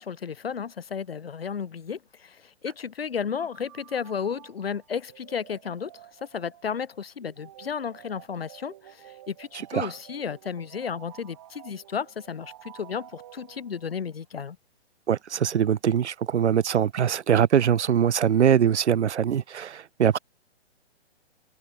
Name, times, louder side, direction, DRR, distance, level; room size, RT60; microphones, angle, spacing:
voice 1, 0.0-5.9 6.2-14.6, left 7 dB, 60° left, 4.5 m, -33 dB
sound 1, 3.4-14.1, right 13 dB, 25° right, 2.9 m, -51 dB
voice 2, 15.1-20.2, right 8 dB, 85° right, 0.9 m, -22 dB
hypercardioid pair, 180°, 34 cm